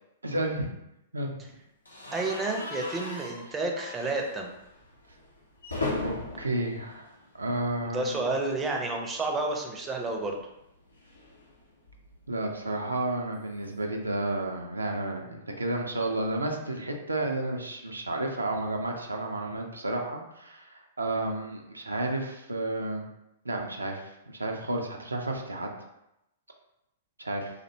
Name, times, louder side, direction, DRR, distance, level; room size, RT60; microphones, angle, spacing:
voice 1, 0.2-0.7 1.1-1.3 6.0-7.1 7.3-8.3 12.3-23.1 23.5-25.7 27.2-27.5, right 2 dB, 90° right, 2 dB, 0.3 m, -31 dB
sound 1, 1.9-7.9 8.2-8.4 8.6-8.7 10.0-12.3, left 2 dB, 85° left, 0.6 m, -39 dB
voice 2, 2.1-4.5 7.8-10.4, right 2 dB, 15° right, 1 dB, 0.4 m, -30 dB
2.5 x 2.1 x 2.7 m, 0.85 s
figure-of-eight pair, 110°, 0 cm